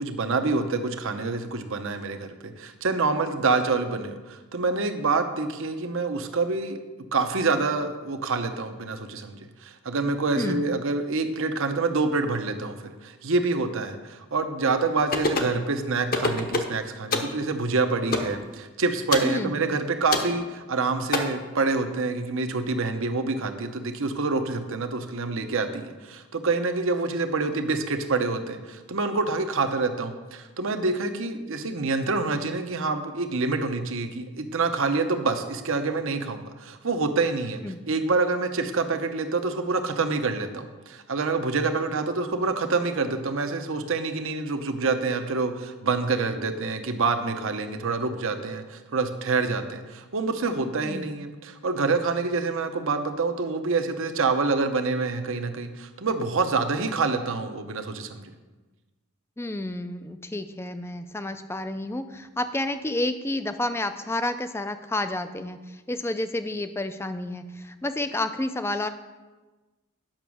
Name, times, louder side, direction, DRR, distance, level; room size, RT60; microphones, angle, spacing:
voice 1, 0.0-6.8 7.1-9.4 9.6-37.6 37.9-58.3, right 3 dB, 60° right, 7 dB, 0.8 m, -27 dB
voice 2, 10.4-10.7 19.2-19.6 37.6-37.8 50.8-51.1 59.4-68.9, left 1 dB, 10° left, 10 dB, 0.4 m, -30 dB
sound 1, 15.1-15.6 16.1-16.7 17.1-17.3 18.1-18.3 19.1-19.3 20.1-20.3 21.1-21.2, left 3 dB, 40° left, 0.9 m, -25 dB
8.9 x 6.1 x 6.2 m, 1.2 s
head